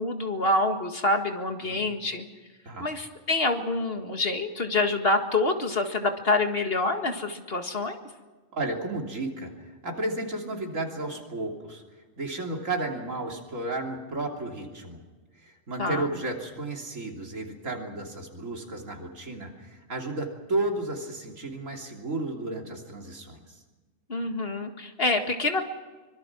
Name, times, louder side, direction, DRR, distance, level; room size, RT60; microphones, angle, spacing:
voice 1, 0.0-2.3 2.8-8.0 15.8-16.1 24.1-25.6, left 2 dB, 50° left, 5 dB, 2.1 m, -26 dB
voice 2, 8.5-9.5 9.8-11.8 12.2-15.0 15.4-23.6, right 2 dB, 85° right, 1 dB, 3.6 m, -33 dB
24.5 x 23.0 x 6.1 m, 1.3 s
omnidirectional pair, 1.3 m